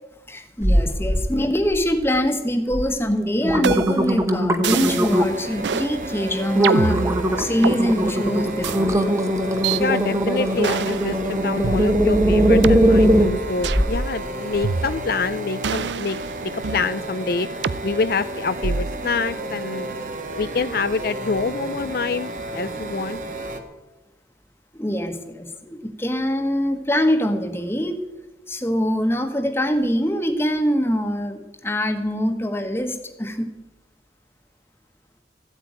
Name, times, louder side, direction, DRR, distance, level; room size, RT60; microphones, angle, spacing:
voice 1, 0.3-7.1 7.4-9.0 24.7-28.0 28.5-33.5, equal, 15° left, 6 dB, 1.4 m, -23 dB
sound 1, 0.6-1.3 1.6-2.2 2.7-2.8 3.2-5.5 6.0-6.1 6.6-14.1 14.5-14.6, equal, 15° right, 1.0 m, -20 dB
sound 2, 3.6-4.1 4.6-5.2 5.6-5.9 6.6-7.8 8.6-8.8 9.6-9.8 10.6-11.1 11.6-11.7 12.6-12.8 13.6-13.9 14.6-15.2 15.6-16.9 17.6-17.8 18.6-19.0, right 5 dB, 85° right, 0.5 m, -26 dB
sound 3, 4.7-23.6, right 2 dB, 45° right, 1.6 m, -32 dB
voice 2, 9.7-17.5 17.8-19.9 20.4-23.2, left 4 dB, 55° left, 12 dB, 0.5 m, -26 dB
15.0 x 8.1 x 9.7 m, 1.0 s
head